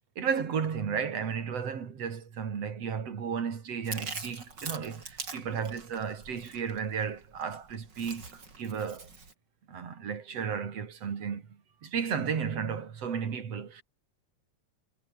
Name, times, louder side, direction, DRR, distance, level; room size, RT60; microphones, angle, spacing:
voice 1, 0.2-9.1 9.7-11.5 11.8-13.8, right 7 dB, 50° right, 3.5 m, -33 dB
Chewing mastication, 3.8-9.3, right 4 dB, 30° right, 4.4 m, -43 dB
omnidirectional pair, 3.7 m